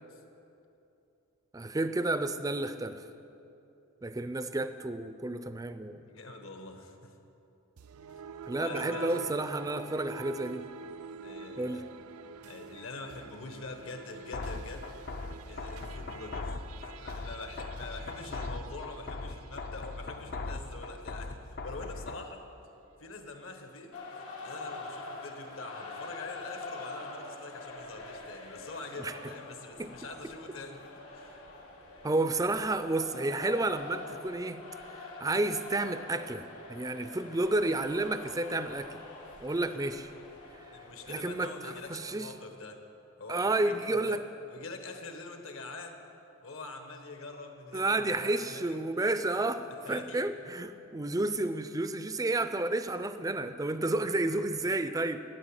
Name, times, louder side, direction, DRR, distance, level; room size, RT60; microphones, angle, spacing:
voice 1, 1.5-3.0 4.0-6.0 8.5-10.6 11.6-11.8 29.0-29.1 29.8-29.9 32.0-34.6 35.2-39.0 39.4-40.1 41.1-42.3 43.3-44.2 47.7-55.2, right 2 dB, 15° right, 11 dB, 0.4 m, -31 dB
voice 2, 6.0-7.2 8.1-8.2 8.6-9.4 11.2-11.9 12.4-14.9 15.5-22.5 23.0-24.0 24.4-31.4 32.3-32.4 39.6-40.1 40.7-42.8 43.2-44.2 44.5-46.0 46.4-48.8 49.9-50.3 52.5-52.6, left 3 dB, 65° left, 5 dB, 1.3 m, -45 dB
sound 1, 7.8-20.1, right 6 dB, 80° right, 0.5 m, -47 dB
sound 2, 14.3-22.3, left 3 dB, 45° left, 0.6 m, -40 dB
sound 3, 23.9-42.4, left 3 dB, 90° left, 2.5 m, -45 dB
12.0 x 10.0 x 8.1 m, 2.9 s
head